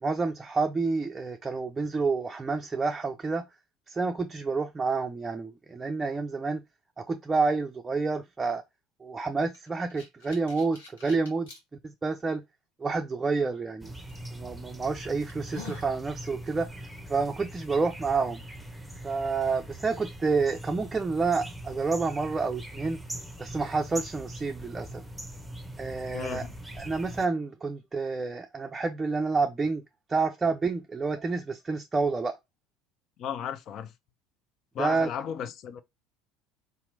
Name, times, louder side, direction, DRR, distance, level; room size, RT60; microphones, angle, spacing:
voice 1, 0.0-3.4 3.9-6.6 7.0-8.6 9.0-11.5 11.8-12.4 12.8-13.9 14.3-16.7 17.1-18.4 19.0-23.0 23.4-25.0 25.8-26.4 26.8-29.8 30.1-32.4 34.8-35.1, right 4 dB, 20° right, 0.5 m, -29 dB
sound 1, 9.5-11.6 12.3-12.4 14.1-14.3 14.8-14.9 15.3-15.9, left 4 dB, 75° left, 1.2 m, -44 dB
sound 2, 13.8-27.3, right 1 dB, 5° right, 0.9 m, -42 dB
voice 2, 26.1-26.5 33.2-33.9 34.7-35.8, left 8 dB, 50° left, 0.5 m, -35 dB
4.0 x 2.9 x 2.6 m
figure-of-eight pair, 65°, 0 cm